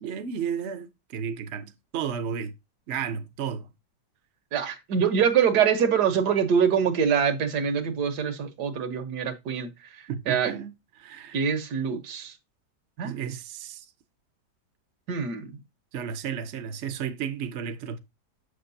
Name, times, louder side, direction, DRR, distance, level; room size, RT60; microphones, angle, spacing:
voice 1, 0.0-2.5 2.9-3.6 10.1-10.7 11.0-11.4 13.0-13.9 15.9-18.0, right 7 dB, 55° right, 0.8 m, -33 dB
voice 2, 4.5-10.5 11.3-12.3 13.0-13.2 15.1-15.6, right 7 dB, 75° right, 1.6 m, -25 dB
7.4 x 6.5 x 2.7 m
omnidirectional pair, 1.8 m